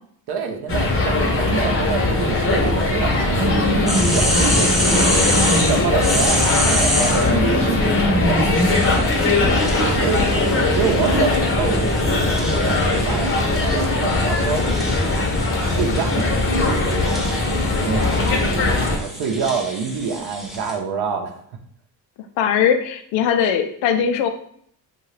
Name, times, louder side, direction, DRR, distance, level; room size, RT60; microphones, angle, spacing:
voice 1, 0.3-4.9 5.5-7.7 8.1-8.6 10.0-10.2 10.7-14.6 15.6-17.1 17.8-21.4, right 5 dB, 60° right, 4 dB, 0.7 m, -27 dB
sound 1, 0.7-19.0, left 2 dB, 30° left, 0.7 m, -20 dB
sound 2, 3.2-11.0, right 1 dB, 35° right, 1.0 m, -25 dB
sound 3, 3.9-7.3 8.6-20.8, equal, ahead, 0.5 m, -28 dB
voice 2, 22.4-24.3, left 8 dB, 75° left, 7 dB, 0.5 m, -19 dB
2.7 x 2.3 x 3.1 m, 0.65 s
supercardioid pair, 75°, 45 cm